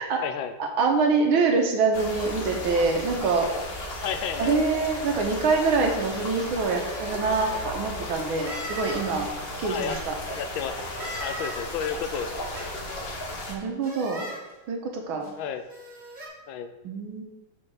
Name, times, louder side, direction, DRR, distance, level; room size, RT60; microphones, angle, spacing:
voice 1, 0.0-0.5 4.0-4.7 9.6-10.7 11.2-12.4 15.4-15.7 16.5-16.7, left 7 dB, 80° left, 9 dB, 1.3 m, -32 dB
voice 2, 0.6-3.5 4.4-9.3 9.6-10.2 13.5-14.3 14.7-15.3 16.8-17.2, right 4 dB, 80° right, 3 dB, 1.8 m, -25 dB
sound 1, 1.9-13.5, left 1 dB, 40° left, 0.9 m, -35 dB
sound 2, 6.8-7.6 8.4-9.0 9.8-10.4 11.0-11.6 12.5-13.1 13.8-14.4 15.2-15.3 15.7-16.3, equal, 25° right, 1.8 m, -38 dB
5.5 x 4.5 x 6.3 m, 1.0 s
omnidirectional pair, 2.2 m